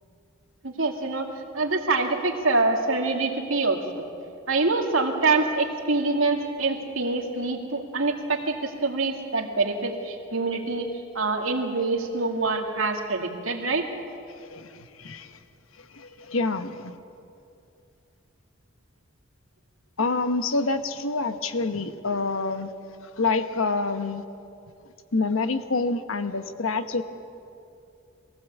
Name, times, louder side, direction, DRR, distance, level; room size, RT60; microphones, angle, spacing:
voice 1, 0.6-1.3 1.5-3.8 4.5-10.9 11.1-13.9, right 3 dB, 85° right, 2 dB, 2.4 m, -25 dB
voice 2, 14.3-15.4 15.7-17.0 20.0-22.7 23.2-24.2 25.1-27.0, left 3 dB, 85° left, 9 dB, 1.1 m, -27 dB
22.5 x 16.5 x 8.3 m, 2.6 s
head